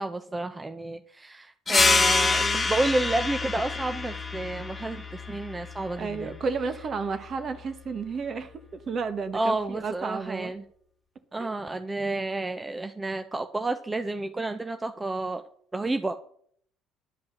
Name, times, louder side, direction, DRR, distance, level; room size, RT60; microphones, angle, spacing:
voice 1, 0.0-6.4 9.3-10.6 11.3-15.4 15.7-16.1, right 2 dB, 15° right, 0.7 m, -30 dB
sound 1, 1.7-6.8, left 4 dB, 25° left, 1.5 m, -27 dB
voice 2, 1.7-2.7 6.0-8.5 8.9-10.5 11.4-11.5, right 5 dB, 45° right, 1.3 m, -32 dB
10.5 x 5.3 x 7.1 m
supercardioid pair, 80°, 0 cm